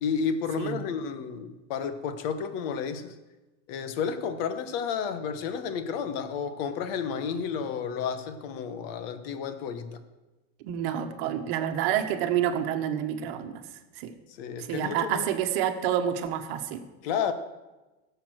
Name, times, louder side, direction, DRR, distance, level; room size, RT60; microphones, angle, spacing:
voice 1, 0.0-3.1 3.7-10.0 14.3-15.3 17.0-17.3, left 6 dB, 45° left, 10 dB, 1.3 m, -31 dB
voice 2, 10.6-13.6 14.0-14.1 14.6-16.8, right 10 dB, 45° right, 6 dB, 1.3 m, -28 dB
16.5 x 7.0 x 6.4 m, 1.1 s
supercardioid pair, 160°, 40 cm